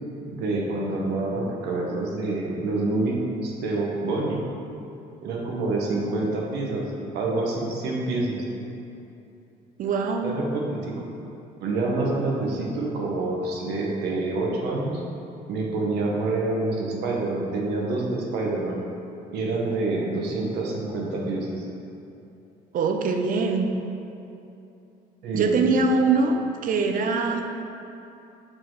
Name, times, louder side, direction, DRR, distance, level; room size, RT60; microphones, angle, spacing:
voice 1, 0.3-3.2 3.4-4.4 5.2-6.8 7.1-8.4 10.2-11.1 11.6-15.0 15.5-18.8 19.3-21.6 25.2-25.7, right 2 dB, 80° right, -1 dB, 1.2 m, -27 dB
voice 2, 9.8-10.3 22.7-23.7 25.3-27.4, right 4 dB, 55° right, 4 dB, 0.7 m, -23 dB
6.4 x 4.3 x 4.7 m, 2.8 s
cardioid pair, 110°, 17 cm